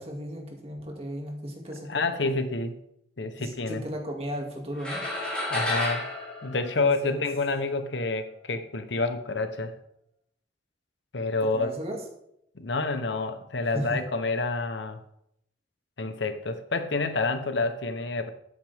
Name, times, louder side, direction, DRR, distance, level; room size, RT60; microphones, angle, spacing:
voice 1, 0.0-2.3 3.4-5.0 6.7-7.2 11.5-12.0 13.7-14.0, equal, 35° right, 1 dB, 2.3 m, -35 dB
voice 2, 1.9-2.7 3.2-3.8 5.5-6.0 6.4-9.7 11.1-11.8 12.6-15.0 16.0-18.3, left 3 dB, 85° left, 9 dB, 1.0 m, -28 dB
sound 1, 4.8-7.4, left 1 dB, 5° left, 4.2 m, -31 dB
12.5 x 9.2 x 3.6 m, 0.77 s
head